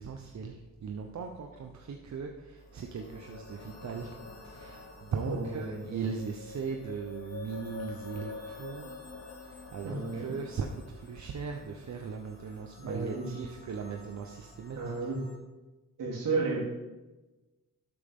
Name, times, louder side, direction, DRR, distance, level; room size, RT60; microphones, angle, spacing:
voice 1, 0.0-8.9 9.3-14.9, right 5 dB, 60° right, 3 dB, 1.0 m, -39 dB
sound 1, 2.6-15.3, left 4 dB, 55° left, 2.3 m, -48 dB
voice 2, 5.2-6.0 9.8-10.3 12.8-13.3 14.7-15.2 16.0-16.7, right 3 dB, 75° right, -2 dB, 3.5 m, -33 dB
12.5 x 8.4 x 3.8 m, 1.1 s
cardioid pair, 105°, 32 cm